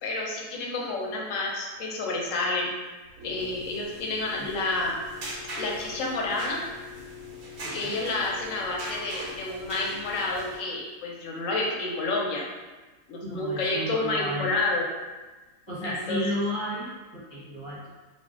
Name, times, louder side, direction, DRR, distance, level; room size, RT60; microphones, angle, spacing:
voice 1, 0.0-2.7 3.2-5.0 5.6-6.6 7.7-12.4 13.1-14.9 15.8-16.2, left 2 dB, 70° left, -1 dB, 0.8 m, -29 dB
sound 1, 3.1-10.6, left 1 dB, 70° right, 1.1 m, -40 dB
voice 2, 7.6-8.0 13.2-14.5 15.7-17.9, equal, 25° left, -10 dB, 0.7 m, -33 dB
2.6 x 2.2 x 3.6 m, 1.2 s
omnidirectional pair, 1.6 m